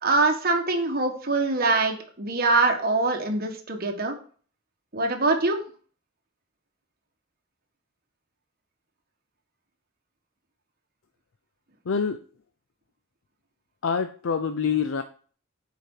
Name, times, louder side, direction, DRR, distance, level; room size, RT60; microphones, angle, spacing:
voice 1, 0.0-4.1 4.9-5.6, right 3 dB, 45° right, 4 dB, 1.4 m, -23 dB
voice 2, 11.9-12.2 13.8-15.0, left 6 dB, 70° left, 9 dB, 0.5 m, -26 dB
7.7 x 5.0 x 4.7 m, 0.43 s
head